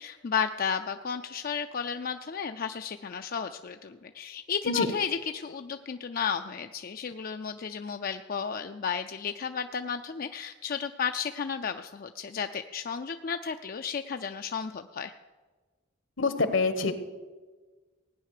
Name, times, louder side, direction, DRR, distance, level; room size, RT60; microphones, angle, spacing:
voice 1, 0.0-15.1, left 6 dB, 45° left, 7 dB, 0.4 m, -33 dB
voice 2, 16.2-16.9, left 3 dB, 75° left, 10 dB, 1.3 m, -26 dB
17.5 x 9.6 x 6.6 m, 1.4 s
head